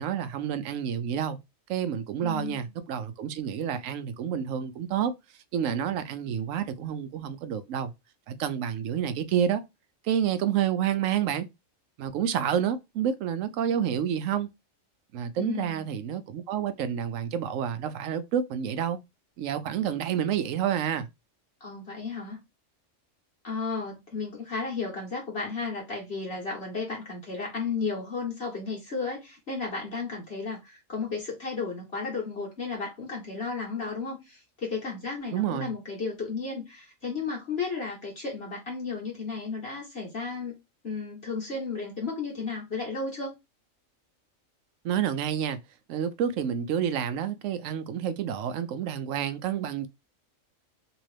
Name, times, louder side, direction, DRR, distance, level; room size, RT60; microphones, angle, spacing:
voice 1, 0.0-1.4 1.7-5.1 5.5-7.9 8.3-9.6 10.0-11.5 12.0-14.5 15.1-19.0 19.4-21.1 35.3-35.7 44.8-45.6 45.9-49.9, right 9 dB, 80° right, 1.0 m, -29 dB
voice 2, 2.2-2.7 15.4-15.9 21.6-22.4 23.4-40.5 40.8-43.3, left 4 dB, 50° left, 1.5 m, -34 dB
3.0 x 2.9 x 3.2 m
omnidirectional pair, 1.3 m